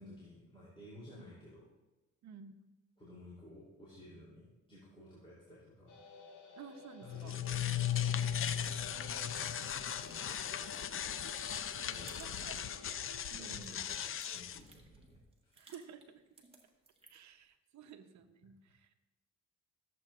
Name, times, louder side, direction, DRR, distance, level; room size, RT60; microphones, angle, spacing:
voice 1, 0.0-1.7 3.0-6.0 7.1-8.2 9.4-10.8 11.9-12.4 13.4-14.0 14.3-15.7, left 1 dB, 20° left, -8 dB, 3.2 m, -55 dB
voice 2, 2.2-2.6 6.5-7.4 8.8-9.5 11.8-12.6 13.0-13.9 15.6-16.2 17.1-18.9, right 7 dB, 65° right, 8 dB, 0.9 m, -53 dB
sound 1, 5.9-13.3, left 3 dB, 75° left, 1.7 m, -54 dB
sound 2, 7.0-14.6, left 9 dB, 45° left, 0.5 m, -37 dB
sound 3, 9.7-12.8 13.1-17.3, right 3 dB, 20° right, 1.6 m, -62 dB
14.0 x 7.8 x 2.5 m, 1.1 s
cardioid pair, 90°, 30 cm